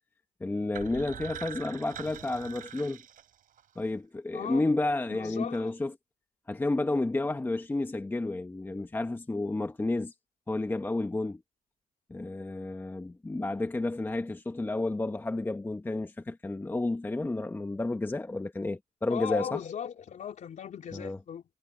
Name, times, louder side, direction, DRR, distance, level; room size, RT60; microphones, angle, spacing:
voice 1, 0.4-3.0 3.8-5.9 6.5-10.1 10.5-11.4 12.1-19.6 20.9-21.2, left 2 dB, 10° left, 1.0 m, -31 dB
sound 1, 0.7-3.8, right 10 dB, 55° right, 4.1 m, -44 dB
voice 2, 4.3-4.7 5.1-5.7 19.1-21.4, left 8 dB, 45° left, 3.5 m, -37 dB
cardioid pair, 110°, 17 cm